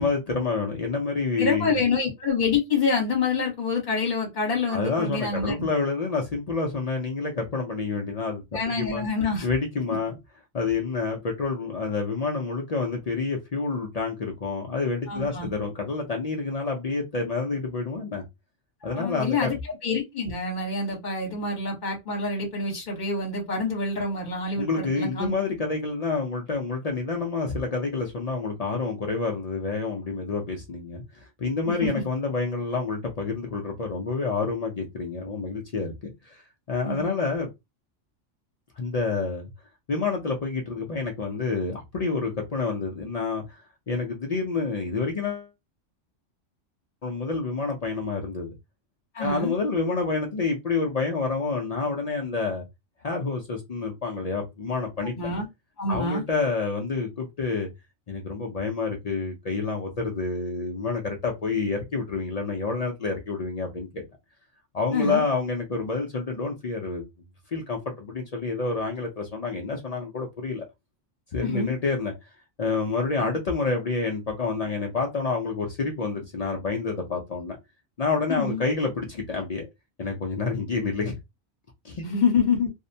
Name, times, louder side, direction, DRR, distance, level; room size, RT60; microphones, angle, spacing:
voice 1, 0.0-1.8 4.7-9.0 9.4-10.2 10.5-18.2 18.8-19.5 24.5-36.4 36.7-37.5 38.8-39.5 39.9-43.6 43.9-45.5 47.0-48.5 49.2-52.6 53.0-55.3 55.9-57.7 58.1-64.0 64.7-67.0 67.5-70.7 71.3-72.3 72.6-77.6 78.0-79.7 80.0-81.1 81.8-82.1, left 4 dB, 60° left, 0.4 m, -28 dB
voice 2, 1.4-5.7 8.5-9.5 15.1-15.5 18.8-19.6 19.8-25.3 31.7-31.9 36.8-37.1 49.1-49.5 55.1-55.5 55.8-56.2 64.9-65.2 71.4-71.7 78.3-78.6 82.0-82.7, left 4 dB, 40° left, 1.1 m, -26 dB
2.6 x 2.1 x 2.6 m
omnidirectional pair, 1.3 m